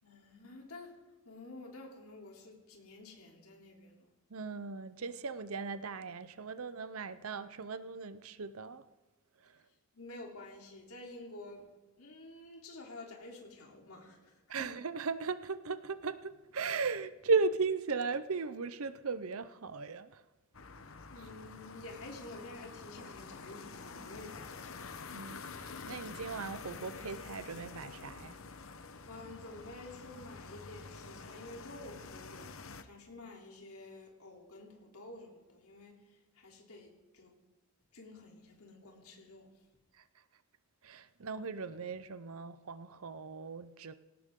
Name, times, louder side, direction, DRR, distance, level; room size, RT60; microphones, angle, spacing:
voice 1, 0.0-1.0 1.2-4.1 9.9-11.7 12.0-14.7 21.1-25.0 29.1-37.3 37.9-39.5, left 2 dB, 80° left, 3.4 m, -50 dB
voice 2, 4.3-8.8 9.4-9.5 14.5-20.2 25.1-28.4 40.0-40.1 40.8-43.9, right 4 dB, 75° right, 0.7 m, -37 dB
sound 1, 20.5-32.8, left 4 dB, 65° left, 1.0 m, -48 dB
19.0 x 18.0 x 3.8 m
head